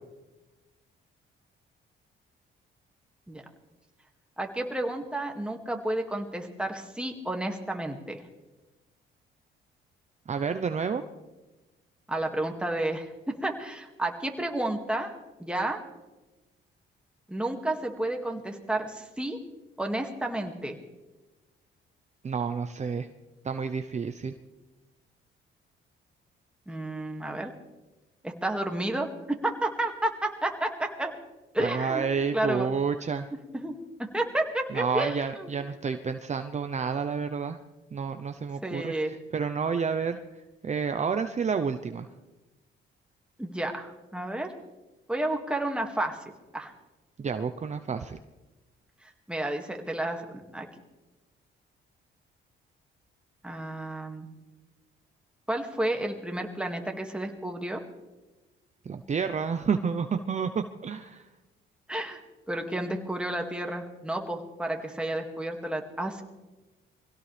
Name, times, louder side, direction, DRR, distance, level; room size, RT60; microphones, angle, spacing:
voice 1, 4.4-8.2 12.1-15.1 15.4-15.8 17.3-19.4 19.8-20.8 26.7-27.5 28.2-31.1 31.5-32.1 32.3-32.7 33.5-33.7 34.0-35.5 38.6-39.1 43.4-44.5 45.1-46.7 49.3-50.7 53.4-54.3 55.5-57.8 61.9-62.2 62.5-66.2, right 1 dB, 5° right, 3 dB, 2.2 m, -31 dB
voice 2, 10.3-11.0 22.2-23.1 23.4-24.3 31.6-33.3 34.7-37.6 37.9-42.1 47.2-48.2 58.8-61.2, right 6 dB, 35° right, 8 dB, 0.8 m, -30 dB
24.0 x 17.0 x 3.5 m, 1.1 s
cardioid pair, 90°, 20 cm